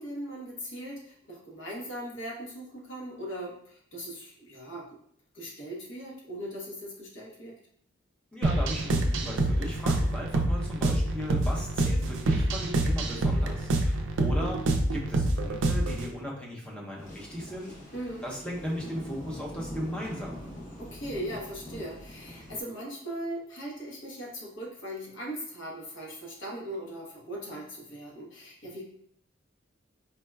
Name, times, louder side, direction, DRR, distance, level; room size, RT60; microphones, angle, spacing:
voice 1, 0.0-5.0 5.3-7.6 17.9-18.3 20.8-28.8, equal, 75° left, -3 dB, 0.9 m, -39 dB
voice 2, 8.3-17.8 18.2-20.5, equal, 5° left, -3 dB, 0.6 m, -37 dB
sound 1, 8.4-16.1, right 2 dB, 70° right, 0.4 m, -26 dB
sound 2, 17.0-22.6, equal, 45° left, 0.8 m, -43 dB
4.4 x 2.1 x 2.2 m, 0.65 s
head